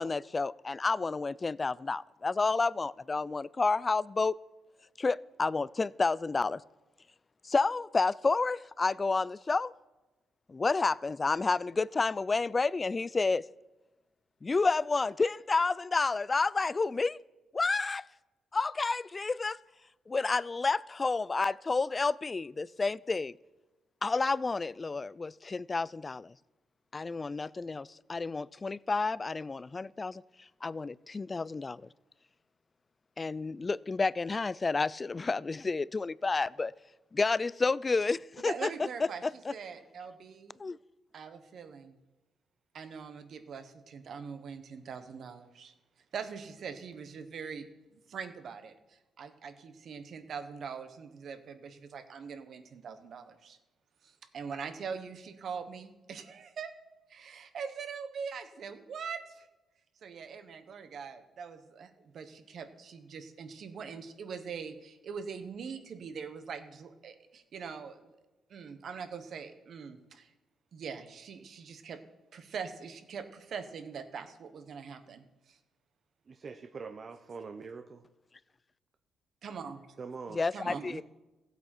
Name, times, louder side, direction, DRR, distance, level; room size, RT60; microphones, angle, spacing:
voice 1, 0.0-4.4 5.0-6.6 7.4-9.7 10.5-13.4 14.4-17.2 17.5-18.1 18.5-19.6 20.1-23.3 24.0-26.3 26.9-30.2 30.6-31.8 33.2-36.7 37.1-38.7 39.2-39.5 40.6-40.8 80.3-81.0, left 3 dB, 25° left, 0.3 m, -30 dB
voice 2, 38.4-39.2 39.5-40.6 41.1-41.9 42.7-45.7 46.1-53.6 54.0-56.7 57.1-59.5 60.0-68.1 68.5-70.3 70.7-72.0 72.3-75.6 79.4-79.8 80.5-80.8, right 6 dB, 60° right, 1.2 m, -42 dB
voice 3, 76.3-78.0 80.0-81.0, right 5 dB, 45° right, 0.7 m, -44 dB
16.0 x 8.2 x 4.5 m
cardioid pair, 90°, 0 cm